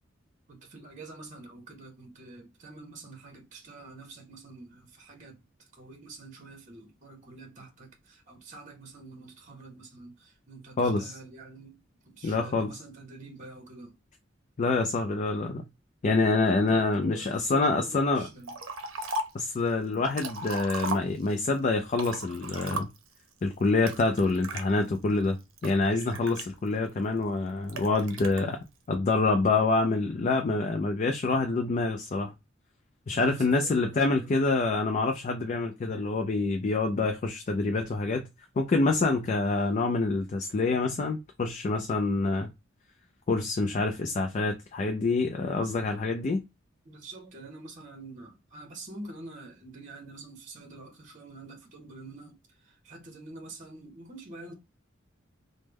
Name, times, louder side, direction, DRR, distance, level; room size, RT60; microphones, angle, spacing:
voice 1, 0.5-14.0 16.4-18.5 33.1-34.3 46.8-54.5, right 2 dB, 40° right, 0.8 m, -47 dB
voice 2, 10.8-11.1 12.2-12.7 14.6-15.6 16.0-18.3 19.3-22.9 23.4-28.6 28.9-32.3 33.1-38.3 38.6-42.5 43.3-46.4, left 3 dB, 40° left, 0.4 m, -26 dB
Liquid, 18.4-19.5 19.9-21.5 21.9-23.2 23.9-24.6 25.2-26.9 27.7-28.4, right 2 dB, 85° right, 0.6 m, -36 dB
3.1 x 2.1 x 3.3 m
head